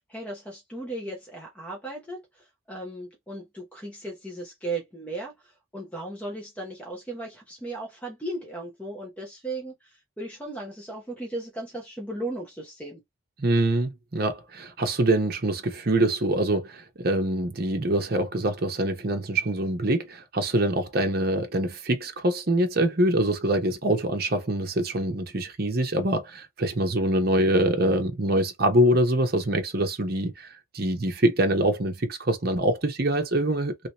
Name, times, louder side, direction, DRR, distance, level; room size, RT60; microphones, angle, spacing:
voice 1, 0.0-13.0, right 2 dB, 5° left, 0.9 m, -36 dB
voice 2, 13.4-33.9, right 1 dB, 50° right, 0.9 m, -24 dB
3.2 x 2.9 x 2.9 m
head